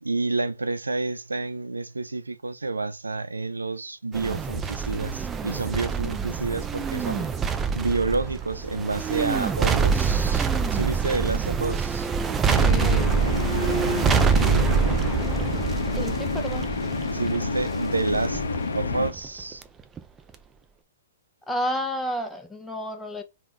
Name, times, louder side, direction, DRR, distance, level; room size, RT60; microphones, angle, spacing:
voice 1, 0.0-7.3 7.7-12.1 17.1-18.4 18.7-19.6, right 3 dB, 85° right, 0.3 m, -29 dB
sound 1, 4.1-19.6 20.0-20.1, right 6 dB, 20° right, 0.4 m, -25 dB
sound 2, 12.5-19.1, left 3 dB, 75° left, 0.5 m, -28 dB
voice 2, 12.6-13.1 15.9-16.7 21.5-23.2, equal, 5° left, 0.8 m, -31 dB
3.5 x 2.4 x 3.5 m
figure-of-eight pair, 115°, 0 cm